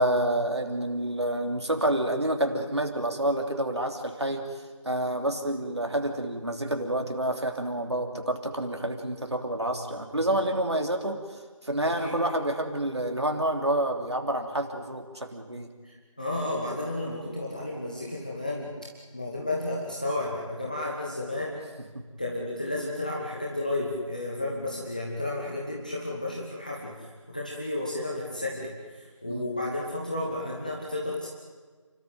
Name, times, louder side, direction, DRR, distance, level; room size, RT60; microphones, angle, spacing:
voice 1, 0.0-4.5 4.8-15.7 21.9-22.1 29.3-29.5, right 1 dB, 55° right, 3 dB, 3.2 m, -28 dB
voice 2, 11.8-12.2 15.8-18.7 19.1-21.6 22.2-31.3, left 2 dB, 15° left, -3 dB, 1.3 m, -32 dB
29.5 x 13.0 x 9.3 m, 1.4 s
figure-of-eight pair, 175°, 17 cm